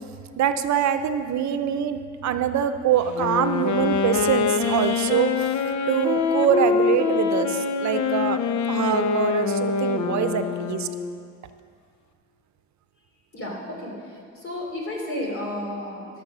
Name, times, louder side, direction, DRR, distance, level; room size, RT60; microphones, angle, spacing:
voice 1, 0.4-5.3 5.9-8.4 8.7-10.9, right 9 dB, 65° right, 9 dB, 0.7 m, -24 dB
Wind instrument woodwind instrument, 3.1-11.2, left 6 dB, 70° left, 0.7 m, -24 dB
voice 2, 13.3-16.1, left 1 dB, 45° left, -2 dB, 3.3 m, -32 dB
14.0 x 6.8 x 6.1 m, 2.3 s
cardioid pair, 90°, 30 cm